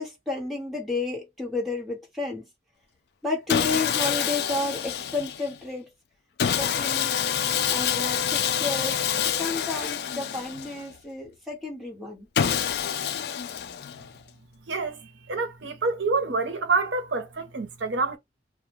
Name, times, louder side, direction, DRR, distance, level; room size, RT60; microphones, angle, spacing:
voice 1, 0.0-2.4 3.2-5.9 6.5-7.1 7.7-9.0 9.4-12.3, left 3 dB, ahead, 1.1 m, -31 dB
Sawing, 3.5-5.5 6.4-10.9 12.3-14.2, left 8 dB, 60° left, 0.3 m, -27 dB
voice 2, 14.7-18.2, right 4 dB, 80° right, 0.6 m, -27 dB
2.3 x 2.1 x 3.0 m
head